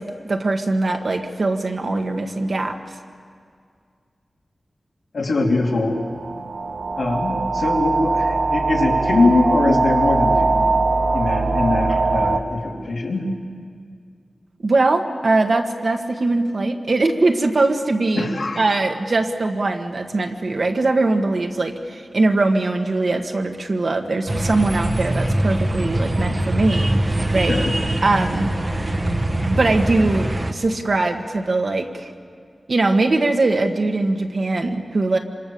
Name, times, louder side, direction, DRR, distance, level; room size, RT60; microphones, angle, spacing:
voice 1, 0.0-2.8 14.6-18.3 18.6-27.6 28.0-28.5 29.5-32.1 32.7-35.2, right 2 dB, 60° right, 4 dB, 1.7 m, -21 dB
voice 2, 5.1-6.0 7.0-10.8 11.1-13.3 18.2-18.6 27.5-27.7, left 2 dB, 80° left, -1 dB, 3.4 m, -22 dB
sound 1, 5.7-12.4, right 3 dB, 75° right, 1.2 m, -21 dB
sound 2, 24.3-30.5, right 1 dB, 30° right, 1.1 m, -22 dB
26.5 x 25.5 x 7.1 m, 2.2 s
wide cardioid pair, 100°, 0 cm